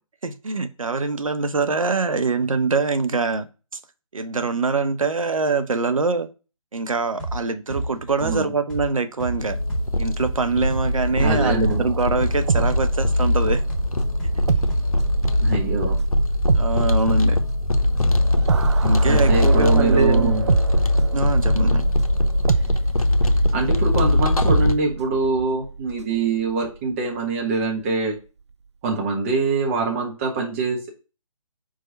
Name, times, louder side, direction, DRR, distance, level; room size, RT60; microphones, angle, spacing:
voice 1, 0.2-3.5 3.7-3.8 4.1-6.3 6.7-9.6 10.0-13.6 14.4-14.5 16.5-17.4 18.8-20.4 21.1-21.9, right 4 dB, 70° right, 0.8 m, -24 dB
sound 1, 7.2-7.4 7.7-11.4 11.7-15.1, right 1 dB, 5° left, 1.5 m, -30 dB
sound 2, 9.4-24.7, left 1 dB, 85° left, 0.8 m, -21 dB
voice 2, 11.2-11.9 15.4-16.0 19.1-20.5 23.5-28.2 28.8-30.9, right 3 dB, 25° right, 1.3 m, -24 dB
sound 3, 11.6-13.4 13.7-13.8 14.5-26.9 27.2-27.4, right 5 dB, 55° right, 0.4 m, -27 dB
4.8 x 4.5 x 4.4 m
figure-of-eight pair, 145°, 18 cm